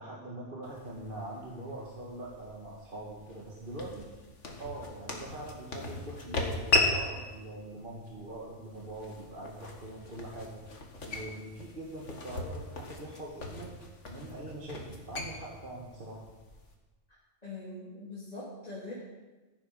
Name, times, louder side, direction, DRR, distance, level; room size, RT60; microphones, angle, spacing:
voice 1, 0.0-4.2 4.6-10.6 11.0-13.7 14.1-16.2, right 1 dB, 50° right, -4 dB, 2.1 m, -43 dB
sound 1, 0.6-16.7, left 2 dB, 80° left, 2.1 m, -37 dB
voice 2, 17.4-18.9, left 2 dB, 35° left, -8 dB, 3.3 m, -42 dB
15.5 x 10.5 x 5.6 m, 1.2 s
omnidirectional pair, 1.2 m